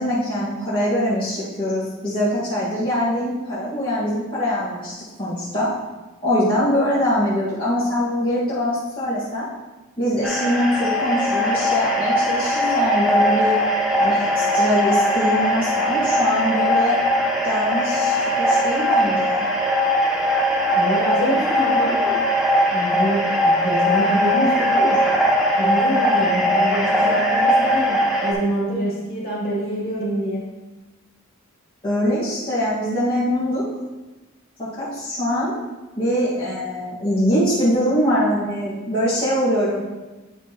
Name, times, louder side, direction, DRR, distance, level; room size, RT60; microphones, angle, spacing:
voice 1, 0.0-5.7 6.2-9.5 10.0-13.6 14.0-17.0 17.4-19.5 31.8-33.6 34.6-35.6 35.9-39.8, equal, 25° left, -12 dB, 1.6 m, -23 dB
sound 1, 10.2-28.3, equal, ahead, 1.0 m, -20 dB
voice 2, 20.7-22.2 22.7-25.1 25.6-30.5, equal, 50° left, -6 dB, 2.5 m, -25 dB
8.9 x 5.9 x 2.9 m, 1.2 s
head